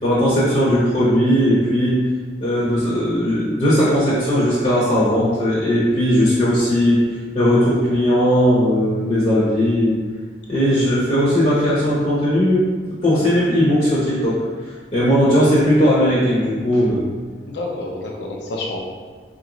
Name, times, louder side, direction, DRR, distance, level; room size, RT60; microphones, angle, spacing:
voice 1, 0.0-2.0 2.4-7.0 7.3-10.0 10.5-12.6 13.0-14.4 14.9-17.0, equal, 40° left, -9 dB, 0.8 m, -17 dB
voice 2, 17.5-18.8, left 2 dB, 70° left, -1 dB, 0.6 m, -28 dB
4.2 x 2.5 x 3.0 m, 1.5 s
head